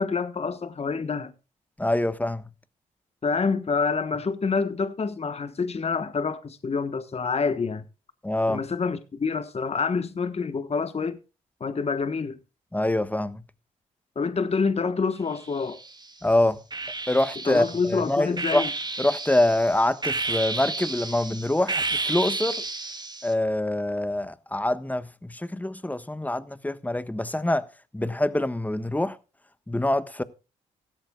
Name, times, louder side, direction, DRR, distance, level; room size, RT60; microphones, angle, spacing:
voice 1, 0.0-1.3 3.2-7.8 8.5-11.2 11.6-12.4 14.1-15.8 17.5-18.7, left 5 dB, 40° left, 1.3 m, -27 dB
voice 2, 1.8-2.4 8.2-8.6 12.7-13.4 16.2-16.6 17.1-18.6 19.0-22.6 23.2-27.6 27.9-29.1 29.7-30.2, left 1 dB, 10° left, 1.3 m, -25 dB
sound 1, 15.3-16.1 16.7-23.3, right 3 dB, 25° right, 2.8 m, -32 dB
16.0 x 13.5 x 2.4 m
hypercardioid pair, 45°, 17 cm